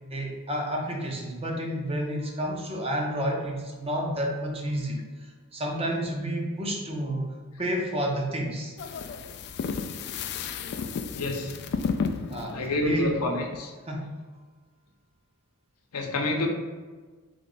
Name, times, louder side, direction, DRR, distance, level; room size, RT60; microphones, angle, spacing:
voice 1, 0.1-7.3 7.6-8.8 12.3-13.2 13.9-14.2, equal, 25° right, 0 dB, 0.7 m, -30 dB
sound 1, 8.8-13.6, left 5 dB, 50° left, 0.3 m, -33 dB
voice 2, 11.1-11.5 12.5-13.7 15.9-16.5, left 2 dB, 85° left, 2 dB, 0.7 m, -28 dB
3.7 x 3.4 x 3.9 m, 1.4 s
head